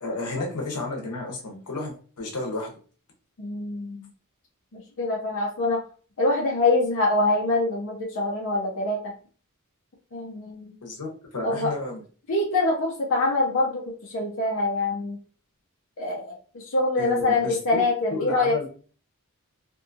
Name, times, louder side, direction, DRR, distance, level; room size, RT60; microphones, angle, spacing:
voice 1, 0.0-2.7 10.8-12.0 17.0-17.8 18.1-18.7, left 2 dB, 85° left, 0 dB, 0.9 m, -32 dB
voice 2, 3.4-4.1 4.7-5.8 6.2-9.1 10.1-10.7 11.4-11.7 12.3-15.2 16.0-18.7, left 2 dB, 60° left, -3 dB, 0.6 m, -25 dB
2.6 x 2.6 x 2.4 m, 0.41 s
head